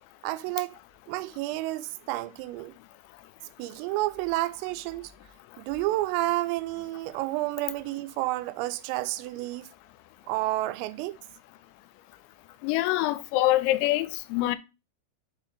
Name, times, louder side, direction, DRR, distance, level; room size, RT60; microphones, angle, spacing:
voice 1, 0.2-0.8 1.1-2.7 3.6-5.1 5.6-9.7 10.3-11.2, right 18 dB, 85° right, 3.1 m, -30 dB
voice 2, 12.6-14.6, left 16 dB, 90° left, 3.3 m, -25 dB
7.2 x 3.8 x 5.0 m
omnidirectional pair, 5.9 m